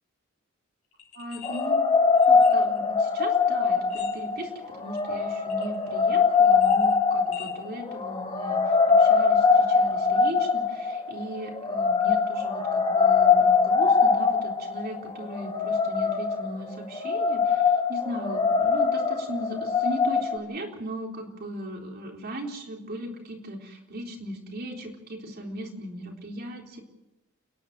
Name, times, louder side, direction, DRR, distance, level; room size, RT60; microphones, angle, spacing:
sound 1, 0.9-1.7 2.1-2.9 3.8-4.5 5.0-5.1 5.5-6.1 6.3-7.5, left 8 dB, 65° left, 4.4 m, -45 dB
voice 1, 1.1-1.8 2.3-26.8, equal, 45° right, 2 dB, 4.0 m, -37 dB
sound 2, 1.4-20.4, left 5 dB, 25° left, 1.9 m, -22 dB
30.0 x 11.0 x 9.0 m, 0.98 s
head